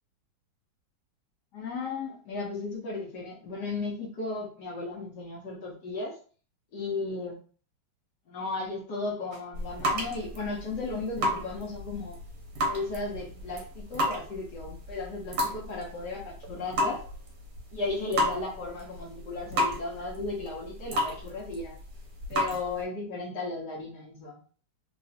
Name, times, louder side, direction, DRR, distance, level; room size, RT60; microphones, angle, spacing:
voice 1, 1.5-6.2 6.7-7.4 8.3-12.2 12.7-17.0 17.7-21.7 22.3-24.4, left 3 dB, 60° left, -2 dB, 1.3 m, -35 dB
sound 1, 9.3-22.8, equal, 60° right, 1.0 m, -33 dB
3.1 x 2.9 x 2.7 m, 0.40 s
omnidirectional pair, 2.3 m